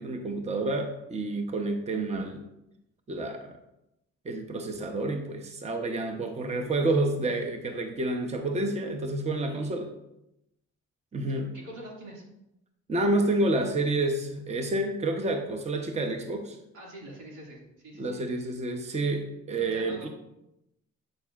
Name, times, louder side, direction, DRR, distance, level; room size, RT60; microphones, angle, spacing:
voice 1, 0.0-2.4 3.1-3.6 4.2-9.9 11.1-11.5 12.9-16.6 18.0-20.1, right 2 dB, 20° right, 4 dB, 0.7 m, -29 dB
voice 2, 9.3-9.8 11.3-12.2 16.7-18.2 19.6-20.1, right 1 dB, 80° right, -3 dB, 2.3 m, -45 dB
7.7 x 6.5 x 2.4 m, 0.86 s
cardioid pair, 90°, 30 cm